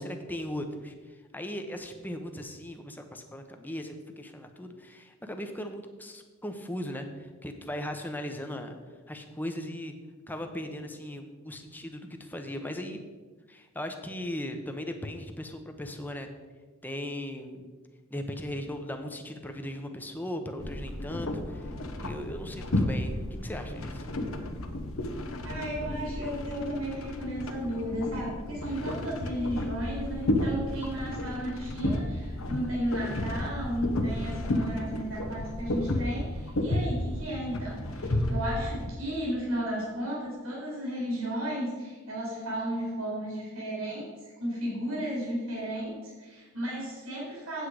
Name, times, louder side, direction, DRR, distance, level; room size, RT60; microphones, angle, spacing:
voice 1, 0.0-8.8 9.1-9.9 10.3-13.0 13.5-16.3 16.8-17.7 18.1-21.7 22.0-24.1, left 1 dB, 10° left, 5 dB, 0.8 m, -38 dB
sound 1, 20.6-38.9, left 1 dB, 75° left, 1.0 m, -32 dB
voice 2, 25.4-47.7, equal, 90° right, -5 dB, 3.2 m, -34 dB
8.3 x 8.0 x 4.9 m, 1.4 s
head